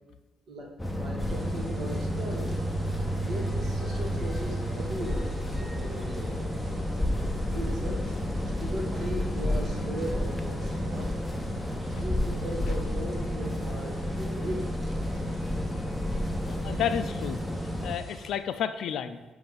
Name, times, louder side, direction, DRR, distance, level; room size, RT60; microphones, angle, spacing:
voice 1, 0.5-2.6 3.2-6.5 7.4-8.1 8.6-11.1 11.9-15.3, right 1 dB, 60° right, 0 dB, 1.6 m, -38 dB
sound 1, 0.8-17.9, left 1 dB, 10° left, 0.6 m, -31 dB
sound 2, 1.2-18.3, right 1 dB, 20° right, 1.2 m, -45 dB
voice 2, 16.4-19.2, left 9 dB, 75° left, 10 dB, 0.3 m, -32 dB
7.5 x 2.6 x 5.3 m, 1.2 s
cardioid pair, 90°, 0 cm